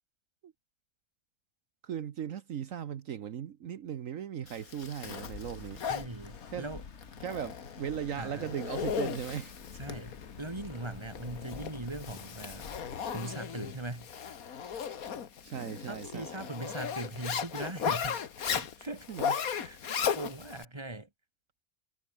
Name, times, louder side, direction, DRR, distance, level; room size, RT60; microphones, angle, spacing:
voice 1, 1.8-5.8 6.5-6.6 7.2-9.5 15.4-16.5 19.1-19.4, right 9 dB, 70° right, 1.3 m, -38 dB
Zipper (clothing), 4.5-20.6, left 7 dB, 90° left, 1.9 m, -37 dB
sound 1, 5.1-13.2, left 5 dB, 55° left, 1.8 m, -49 dB
voice 2, 5.9-6.8 8.2-8.5 9.8-12.7 13.1-14.1 15.9-18.2 18.5-19.1 19.5-21.1, right 2 dB, 20° right, 2.5 m, -40 dB
omnidirectional pair, 1.5 m